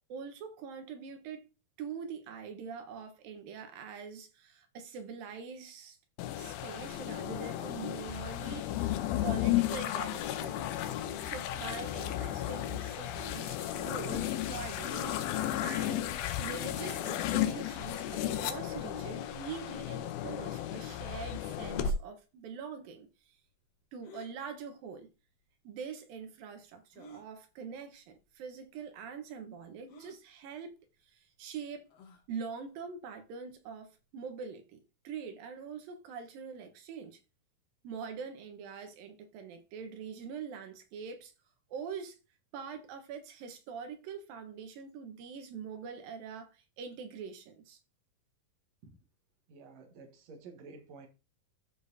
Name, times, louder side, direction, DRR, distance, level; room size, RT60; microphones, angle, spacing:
voice 1, 0.1-1.5 1.8-6.0 6.3-8.9 9.2-10.7 11.2-16.1 16.4-23.1 23.9-25.1 25.6-30.7 31.1-31.9 32.3-37.2 37.8-41.3 41.7-42.2 42.5-47.8, right 6 dB, 80° right, 2.9 m, -44 dB
sound 1, 6.2-21.9, left 11 dB, 90° left, 2.5 m, -34 dB
sound 2, 17.3-17.6 19.7-20.0 20.8-20.9 21.7-22.0 24.0-24.3 25.4-25.5 26.9-27.3 28.2-28.3 28.6-28.7 29.9-30.2 31.9-32.3, left 1 dB, 75° left, 3.0 m, -52 dB
voice 2, 49.5-51.1, right 4 dB, 60° right, 2.3 m, -51 dB
13.0 x 5.1 x 2.7 m
omnidirectional pair, 4.0 m